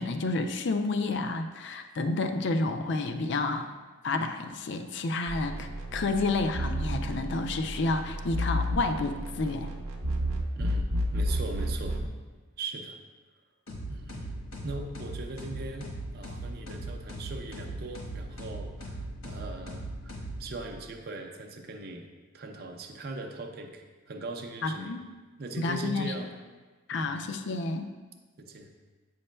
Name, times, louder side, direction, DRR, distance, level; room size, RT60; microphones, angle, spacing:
voice 1, 0.0-3.7 4.0-9.7 24.6-25.0 25.6-26.1 26.9-27.9, left 3 dB, 55° left, 7 dB, 0.4 m, -30 dB
sound 1, 5.3-12.1, equal, 80° right, 0.7 m, -31 dB
voice 2, 10.5-12.0 12.6-13.0 13.9-22.1 22.3-25.0 25.4-26.3 26.9-27.2 28.4-28.7, right 2 dB, 45° right, 3 dB, 0.5 m, -40 dB
sound 2, 13.7-20.8, right 1 dB, 90° left, 1.2 m, -39 dB
8.1 x 5.5 x 2.2 m, 1.3 s
head